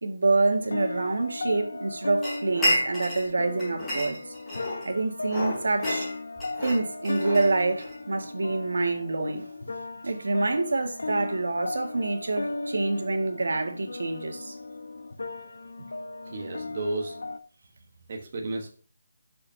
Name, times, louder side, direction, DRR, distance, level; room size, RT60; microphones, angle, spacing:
voice 1, 0.0-4.3 4.8-6.1 6.6-9.5 10.0-14.6, right 3 dB, 75° right, 2.0 m, -27 dB
sound 1, 0.6-17.4, left 2 dB, 85° left, 1.3 m, -37 dB
sound 2, 2.2-3.3 3.6-4.9 5.3-8.0, equal, 5° left, 4.1 m, -30 dB
voice 2, 16.3-17.2 18.1-18.7, right 2 dB, 25° right, 1.3 m, -32 dB
16.0 x 6.7 x 2.8 m
hypercardioid pair, 180°, 0 cm